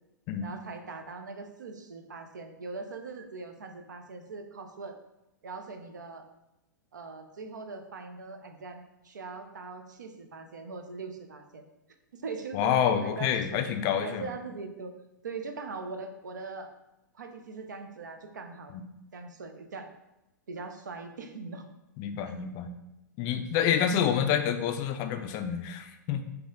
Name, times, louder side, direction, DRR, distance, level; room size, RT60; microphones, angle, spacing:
voice 1, 0.4-4.9 5.4-6.3 6.9-11.7 12.1-13.7 14.0-14.9 15.2-16.7 17.1-18.7 19.1-19.9 20.5-21.7 22.3-22.4, right 4 dB, 70° right, 6 dB, 0.5 m, -41 dB
voice 2, 12.5-14.3 18.7-18.8 22.0-22.7 23.2-26.3, left 8 dB, 35° left, 7 dB, 0.4 m, -28 dB
4.0 x 2.7 x 3.7 m, 0.95 s
figure-of-eight pair, 105°, 10 cm